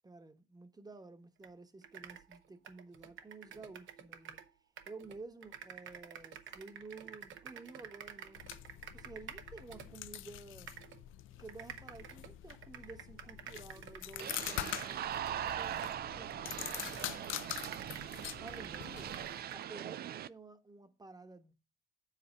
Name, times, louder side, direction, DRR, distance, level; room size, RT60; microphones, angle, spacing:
voice 1, 0.0-4.4 4.9-8.4 8.9-10.7 11.4-17.8 18.4-19.1 19.5-21.5, right 3 dB, 20° right, 1.0 m, -52 dB
sound 1, 1.4-1.5 1.8-4.5 4.8-10.2 10.7-11.0 11.5-17.2 17.5-19.7, right 8 dB, 75° right, 1.0 m, -50 dB
sound 2, 8.3-19.4, left 14 dB, 85° left, 0.5 m, -45 dB
sound 3, 14.2-20.3, right 11 dB, 50° right, 0.4 m, -41 dB
7.5 x 4.0 x 6.3 m
cardioid pair, 90°, 20 cm